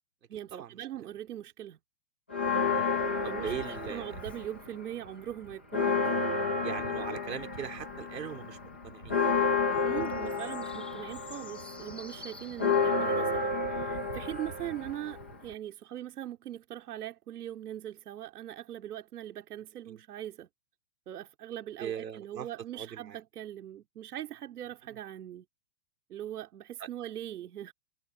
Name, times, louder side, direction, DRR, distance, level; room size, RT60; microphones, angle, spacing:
voice 1, 0.3-1.8 3.0-6.1 9.8-20.5 21.1-25.5 26.1-27.7, right 12 dB, 65° right, 2.7 m, -41 dB
Church bell, 2.3-4.7 5.0-5.1 5.5-15.5, left 4 dB, 10° left, 0.4 m, -31 dB
voice 2, 3.2-4.2 6.6-8.6 8.8-9.2 12.1-12.3 19.9-20.0 21.8-22.5 22.7-23.2 24.9-25.0 26.8-26.9, right 8 dB, 90° right, 4.0 m, -40 dB
hypercardioid pair, 160°, 49 cm